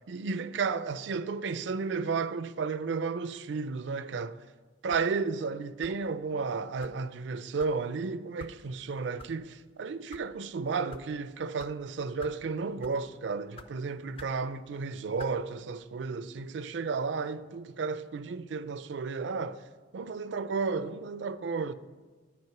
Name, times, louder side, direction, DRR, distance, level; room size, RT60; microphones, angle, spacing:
voice 1, 0.1-4.4 4.8-19.6 19.9-21.7, right 4 dB, 70° right, 0.4 m, -33 dB
sound 1, 4.9-5.1 5.8-6.1 6.8-7.0 7.6-7.8 8.4-8.6 9.2-9.3 9.9-10.2 10.9-11.1 11.6-11.7 12.2-12.4 12.8-13.1 13.6-13.7 14.2-14.4 15.2-15.4, left 3 dB, 30° left, 0.4 m, -48 dB
9.5 x 4.9 x 5.9 m
head